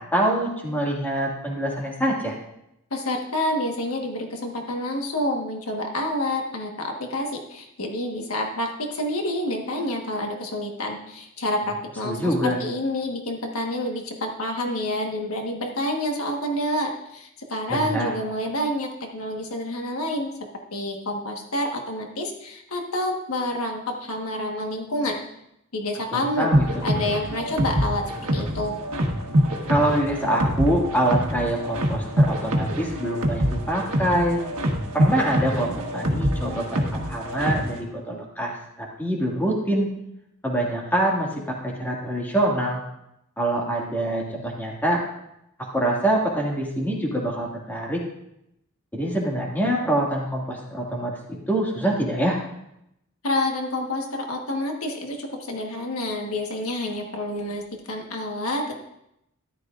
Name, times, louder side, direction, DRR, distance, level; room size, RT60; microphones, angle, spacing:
voice 1, 0.0-2.4 12.0-12.6 17.7-18.1 26.1-26.8 29.7-34.4 34.9-39.9 40.4-42.8 43.4-45.0 45.6-48.0 48.9-51.1 51.5-52.4, right 1 dB, 10° left, -2 dB, 2.0 m, -25 dB
voice 2, 2.9-20.3 20.7-25.2 25.7-26.5 26.8-28.7 53.2-58.7, left 1 dB, 80° left, 2 dB, 1.4 m, -28 dB
sound 1, 26.5-37.8, equal, 85° right, 1.5 m, -25 dB
13.5 x 11.0 x 2.5 m, 0.81 s
head